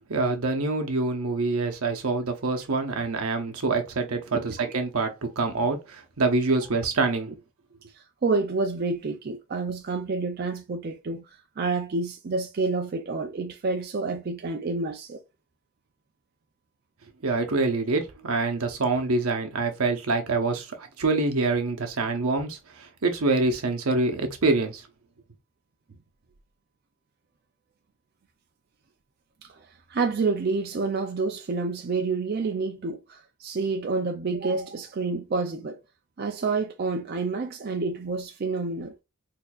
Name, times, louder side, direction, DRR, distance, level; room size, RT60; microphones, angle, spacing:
voice 1, 0.1-7.3 17.2-24.9, right 3 dB, 80° right, 0.8 m, -26 dB
voice 2, 4.3-4.7 8.0-11.2 11.6-15.2 29.4-35.8 36.2-38.9, right 3 dB, 45° right, 0.4 m, -29 dB
4.3 x 2.7 x 2.3 m
head